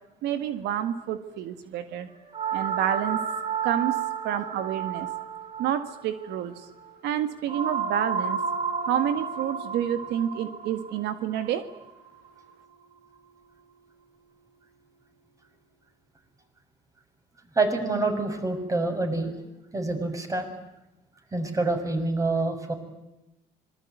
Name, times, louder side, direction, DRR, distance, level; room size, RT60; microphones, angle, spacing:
voice 1, 0.2-2.1 2.5-3.2 3.6-3.9 4.2-5.1 5.6-6.5 7.0-8.4 8.9-11.6, right 10 dB, 85° right, 10 dB, 1.9 m, -28 dB
sound 1, 2.3-12.5, right 7 dB, 35° right, 4.9 m, -32 dB
voice 2, 17.5-19.3 19.7-20.5 21.3-22.7, right 2 dB, 20° right, 5 dB, 6.5 m, -26 dB
26.0 x 22.0 x 9.3 m, 0.93 s
cardioid pair, 110°, 17 cm